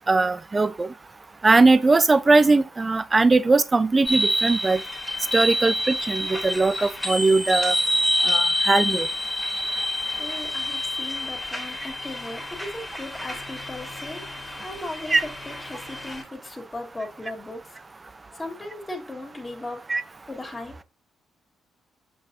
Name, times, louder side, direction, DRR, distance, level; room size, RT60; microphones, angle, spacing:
voice 1, 0.1-0.9 1.4-4.8 5.3-7.7 8.2-9.1 15.1-15.2 19.9-20.0, right 3 dB, 25° right, 0.8 m, -20 dB
sound 1, 4.1-16.2, left 1 dB, 5° left, 3.5 m, -27 dB
voice 2, 10.2-14.2 14.6-17.6 18.4-19.8 20.3-20.8, left 2 dB, 20° left, 3.3 m, -37 dB
8.0 x 5.4 x 2.8 m
cardioid pair, 90°, 0 cm